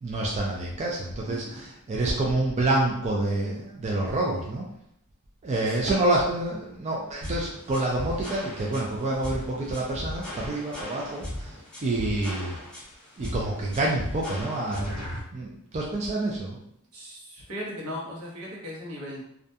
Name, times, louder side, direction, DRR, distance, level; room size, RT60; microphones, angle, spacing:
voice 1, 0.0-4.7 5.4-11.6 11.8-12.6 13.2-15.1 15.3-16.6, right 2 dB, 30° right, -2 dB, 0.3 m, -27 dB
voice 2, 1.2-1.7 5.7-5.8 16.9-19.2, equal, 75° right, -4 dB, 0.8 m, -38 dB
sound 1, 7.2-15.2, left 1 dB, 5° left, 0.7 m, -37 dB
2.4 x 2.2 x 2.6 m, 0.75 s
head